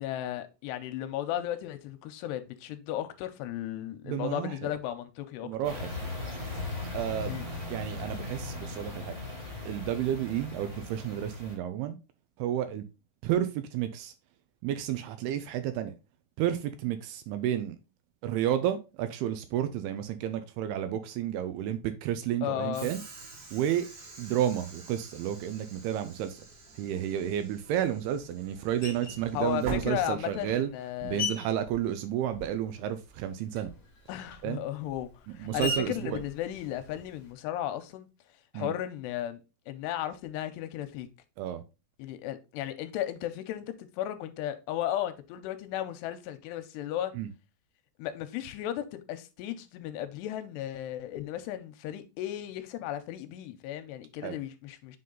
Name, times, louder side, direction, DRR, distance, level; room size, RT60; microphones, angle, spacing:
voice 1, 0.0-5.9 7.3-7.5 22.4-22.9 29.3-31.2 34.1-35.1 35.3-38.1 38.5-39.4 39.7-41.1 42.0-47.1 48.0-55.0, left 12 dB, 85° left, 2.7 m, -35 dB
voice 2, 4.1-4.7 5.4-5.9 6.9-7.3 7.7-9.2 9.6-12.0 12.4-12.8 13.2-14.1 14.6-15.9 16.4-17.8 18.2-23.0 23.5-23.9 24.2-26.4 26.8-30.7 31.0-33.7 34.4-34.6 35.4-36.2 38.5-38.7 41.4-41.6 47.1-47.3 54.2-54.4, right 11 dB, 80° right, 2.4 m, -31 dB
sound 1, 5.6-11.5, left 2 dB, 20° right, 1.6 m, -38 dB
Train / Sliding door, 22.7-30.7, right 3 dB, 50° right, 2.8 m, -45 dB
Screech, 28.8-29.3 30.0-32.7 33.0-37.3, left 3 dB, 55° left, 1.2 m, -40 dB
7.5 x 3.8 x 3.9 m
omnidirectional pair, 4.9 m